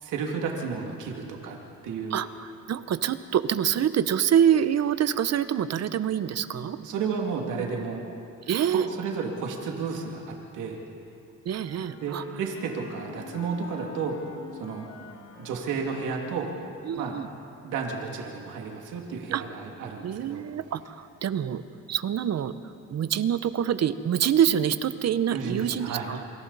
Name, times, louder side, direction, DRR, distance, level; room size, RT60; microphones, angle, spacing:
voice 1, 0.0-1.6 1.8-2.2 6.8-8.1 8.7-10.8 12.0-14.1 14.5-14.9 15.4-16.5 16.9-17.2 17.6-20.4 25.3-26.1, right 5 dB, 85° right, 0 dB, 2.5 m, -32 dB
voice 2, 2.1-6.8 8.5-8.9 11.4-12.2 16.8-17.3 19.3-19.4 20.0-21.6 21.9-22.5 22.9-26.2, right 9 dB, 60° right, 13 dB, 0.9 m, -26 dB
Wind instrument woodwind instrument, 11.5-16.9, left 5 dB, 60° left, 2.4 m, -46 dB
27.0 x 25.5 x 4.1 m, 2.7 s
cardioid pair, 90°, 30 cm